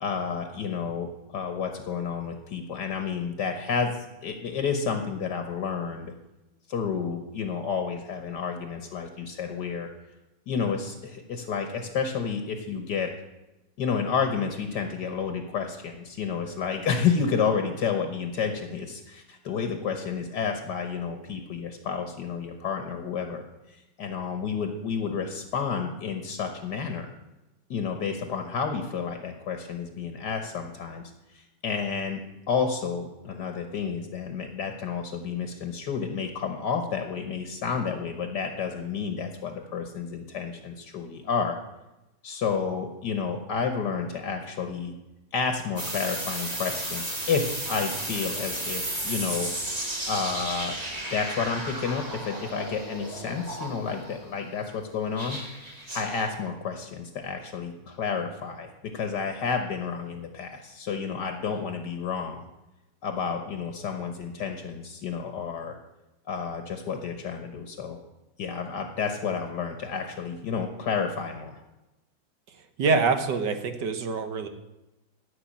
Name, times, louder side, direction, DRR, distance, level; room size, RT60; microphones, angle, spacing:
voice 1, 0.0-6.1 6.7-9.9 10.5-13.1 13.8-27.1 27.7-31.0 31.3-32.2 32.5-41.6 42.2-44.9 45.3-49.5 50.1-50.8 51.1-55.4 55.9-62.4 63.0-65.8 66.3-68.0 68.4-71.6, left 6 dB, 65° left, 6 dB, 1.7 m, -30 dB
sound 1, 45.8-54.2 55.2-56.3, right 1 dB, 20° right, 2.0 m, -34 dB
voice 2, 72.5-74.5, right 4 dB, 65° right, 8 dB, 1.7 m, -26 dB
13.0 x 5.9 x 8.6 m, 1.0 s
omnidirectional pair, 2.1 m